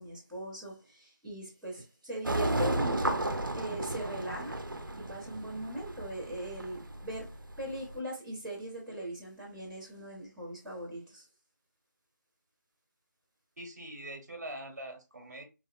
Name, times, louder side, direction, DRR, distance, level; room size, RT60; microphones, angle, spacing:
voice 1, 0.0-3.1 3.6-4.6 5.1-7.3 7.6-11.2, right 1 dB, ahead, 0.5 m, -40 dB
sound 1, 2.3-7.9, right 1 dB, 85° right, 0.6 m, -33 dB
voice 2, 13.6-15.4, right 1 dB, 55° right, 1.0 m, -43 dB
3.9 x 2.0 x 2.3 m
figure-of-eight pair, 165°, 11 cm